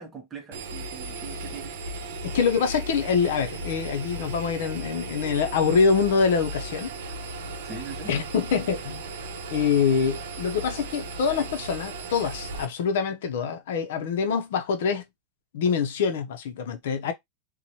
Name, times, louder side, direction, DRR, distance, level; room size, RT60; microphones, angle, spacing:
voice 1, 0.0-1.8 7.6-8.1, right 5 dB, 15° right, 0.6 m, -41 dB
Engine, 0.5-12.6, right 2 dB, 80° right, 0.6 m, -36 dB
voice 2, 2.2-6.9 8.1-9.1 9.5-15.0 15.5-17.1, left 6 dB, 65° left, 0.5 m, -25 dB
3.0 x 2.1 x 2.7 m
supercardioid pair, 175°, 0 cm